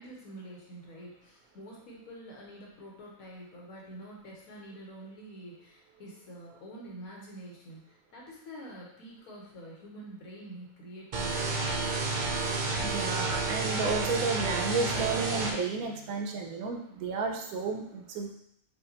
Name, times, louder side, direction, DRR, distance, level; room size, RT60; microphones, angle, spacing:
voice 1, 0.0-11.6, right 1 dB, 85° left, -3 dB, 1.4 m, -47 dB
sound 1, 11.1-15.5, right 3 dB, 55° right, 0.5 m, -30 dB
voice 2, 12.8-18.3, right 4 dB, 85° right, 2 dB, 1.0 m, -32 dB
4.7 x 2.3 x 2.8 m, 0.74 s
omnidirectional pair, 1.5 m